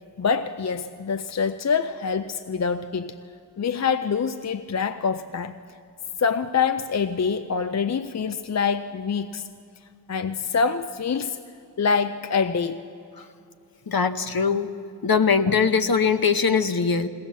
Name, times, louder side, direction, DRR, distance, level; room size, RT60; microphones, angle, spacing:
voice 1, 0.2-3.2 3.6-5.6 6.2-9.4 10.1-11.4 11.8-12.9, left 5 dB, 40° left, 10 dB, 0.5 m, -25 dB
voice 2, 13.9-14.7 15.0-17.1, left 5 dB, 60° left, 9 dB, 1.0 m, -21 dB
20.5 x 17.5 x 7.3 m, 2.5 s
wide cardioid pair, 80°, 41 cm